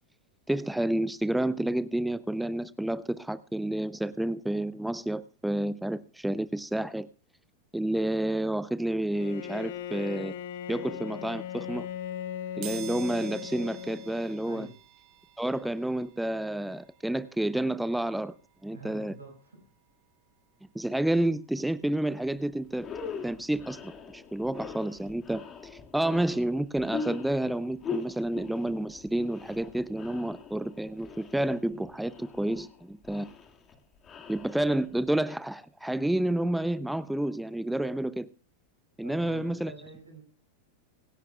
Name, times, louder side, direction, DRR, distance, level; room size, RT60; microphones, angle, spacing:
voice 1, 0.5-7.1 7.7-10.3 10.7-11.9 12.6-14.7 15.4-18.3 18.6-19.1 20.7-22.9 23.2-33.3 34.3-38.3 39.0-39.7, right 1 dB, 5° right, 0.5 m, -30 dB
Bowed string instrument, 9.1-14.6, left 10 dB, 55° left, 1.1 m, -38 dB
sound 1, 12.6-23.3 23.8-23.9 25.0-25.1 25.4-27.5 27.8-30.5 30.8-31.0 31.3-31.4, right 11 dB, 45° right, 2.0 m, -51 dB
voice 2, 14.4-14.8 18.7-19.7 39.0-40.2, right 1 dB, 80° right, 5.5 m, -47 dB
sound 2, 22.2-22.4 22.7-35.1, left 5 dB, 25° left, 2.0 m, -42 dB
24.5 x 10.5 x 2.3 m
figure-of-eight pair, 90°, 0 cm